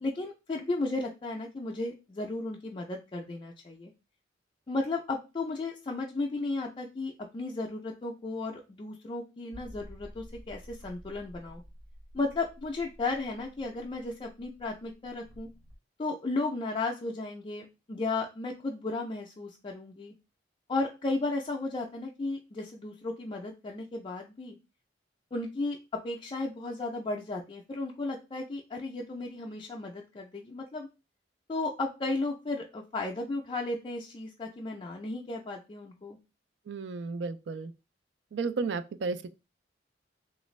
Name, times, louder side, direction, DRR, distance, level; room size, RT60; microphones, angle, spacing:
voice 1, 0.0-3.9 4.7-11.6 12.1-15.5 16.0-20.1 20.7-24.6 25.3-25.8 26.0-30.9 31.5-36.2, left 2 dB, 30° left, 0.3 m, -34 dB
sound 1, 9.5-15.7, equal, 20° right, 0.7 m, -51 dB
voice 2, 36.7-37.7 38.3-39.3, right 4 dB, 80° right, 0.4 m, -33 dB
3.1 x 2.5 x 3.1 m
head